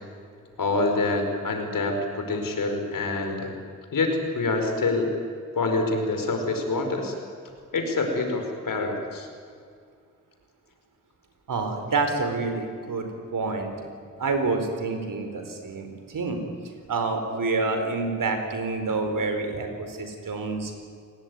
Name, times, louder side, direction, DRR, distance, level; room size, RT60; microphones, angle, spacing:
voice 1, 0.6-3.5 3.9-5.1 5.5-7.1 7.7-9.3, left 3 dB, 80° left, 4 dB, 4.9 m, -26 dB
voice 2, 11.5-13.1 13.3-13.7 14.2-16.4 16.9-20.7, right 3 dB, 75° right, 6 dB, 4.4 m, -28 dB
28.5 x 18.5 x 9.7 m, 2.2 s
wide cardioid pair, 105°, 33 cm